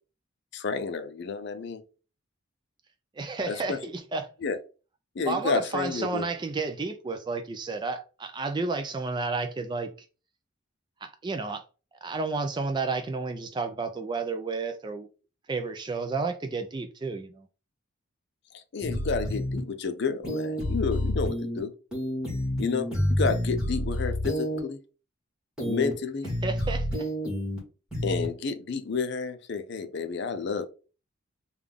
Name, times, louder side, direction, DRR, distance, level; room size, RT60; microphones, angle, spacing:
voice 1, 0.5-1.8 3.4-3.8 4.4-4.6 5.2-6.3 18.7-21.7 22.6-24.8 25.6-26.3 28.0-30.7, left 5 dB, 55° left, 0.5 m, -30 dB
voice 2, 3.2-4.3 5.3-9.9 11.0-11.6 12.0-15.1 15.5-17.5 26.4-27.1, right 4 dB, 20° right, 0.3 m, -31 dB
sound 1, 18.8-19.6 20.2-21.6 21.9-24.6 25.6-25.9 26.2-27.6 27.9-28.3, equal, 5° right, 1.3 m, -29 dB
3.4 x 2.3 x 3.6 m
head